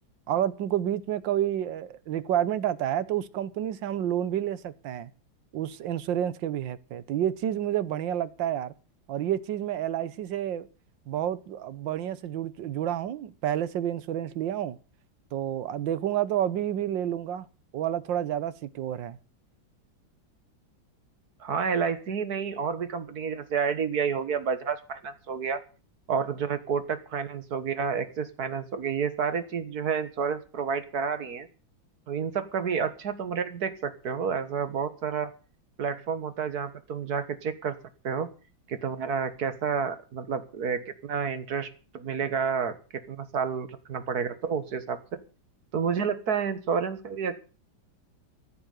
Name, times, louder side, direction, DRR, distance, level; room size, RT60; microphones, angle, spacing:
voice 1, 0.3-5.1 5.5-8.7 9.1-10.7 11.1-14.8 15.3-17.5 17.7-19.2, right 11 dB, 70° right, 1.6 m, -29 dB
voice 2, 21.4-25.6 26.1-31.5 32.1-35.3 35.8-37.8 38.0-38.3 38.7-41.7 41.9-42.8 43.1-45.2 45.7-47.4, right 6 dB, 50° right, 1.9 m, -30 dB
14.5 x 6.9 x 9.3 m
omnidirectional pair, 2.2 m